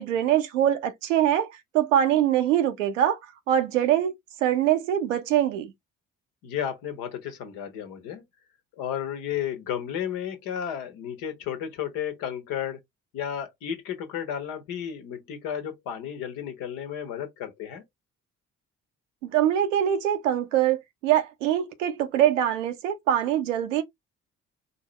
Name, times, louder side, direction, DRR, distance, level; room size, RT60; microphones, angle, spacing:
voice 1, 0.0-3.2 3.5-4.1 4.4-5.7 19.2-20.8 21.0-23.8, right 11 dB, 70° right, 0.9 m, -23 dB
voice 2, 6.4-8.2 8.8-12.8 13.1-17.8, left 9 dB, 60° left, 1.3 m, -33 dB
4.5 x 2.8 x 3.1 m
figure-of-eight pair, 45°, 39 cm